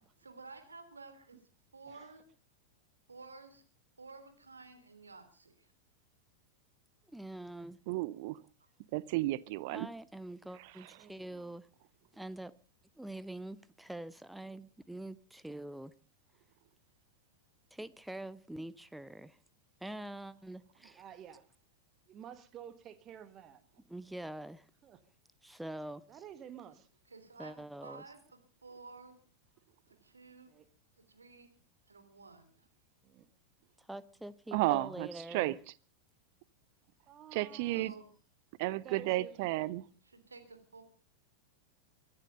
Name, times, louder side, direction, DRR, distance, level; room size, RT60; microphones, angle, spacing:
voice 1, 0.2-1.4 1.7-2.3 3.1-3.6 4.0-5.7 27.1-29.2 29.9-30.5 31.1-31.5 31.9-32.7 37.6-38.1 40.0-40.8, right 4 dB, 75° right, 3.3 m, -52 dB
voice 2, 7.1-7.8 9.7-11.7 12.1-12.6 13.0-15.9 17.7-19.4 19.8-21.0 23.9-24.7 25.4-26.0 27.4-28.0 33.8-35.6, right 1 dB, 5° right, 0.7 m, -45 dB
voice 3, 7.9-8.4 8.9-9.9 34.5-35.5 37.3-37.9 38.6-39.8, right 18 dB, 50° right, 0.7 m, -32 dB
voice 4, 11.0-11.5 20.9-21.5 22.1-23.6 24.8-25.0 26.1-26.9 30.5-30.6 33.0-33.3 37.1-38.0 38.7-39.5, right 9 dB, 30° right, 1.7 m, -51 dB
23.5 x 11.0 x 5.3 m
figure-of-eight pair, 90°, 0 cm